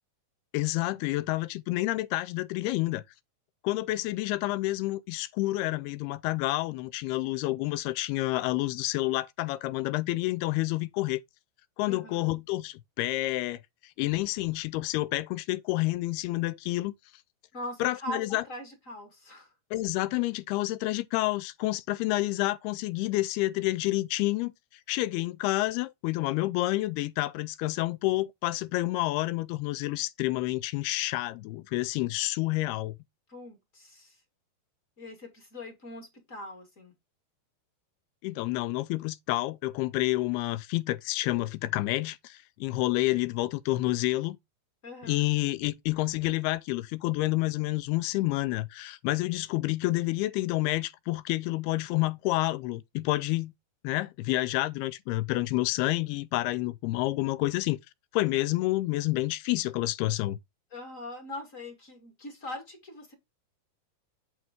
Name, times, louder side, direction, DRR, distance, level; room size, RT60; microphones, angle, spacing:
voice 1, 0.5-3.0 3.6-11.2 11.8-13.6 14.0-16.9 17.8-18.4 19.7-24.5 24.9-32.9 38.2-44.4 45.0-53.5 53.8-57.8 58.1-60.4, left 18 dB, 80° left, 2.6 m, -29 dB
voice 2, 11.8-12.3 17.5-19.5 33.3-34.2 35.0-36.9 44.8-45.2 60.7-63.1, left 1 dB, 30° left, 1.4 m, -42 dB
8.4 x 4.7 x 3.6 m
omnidirectional pair, 4.7 m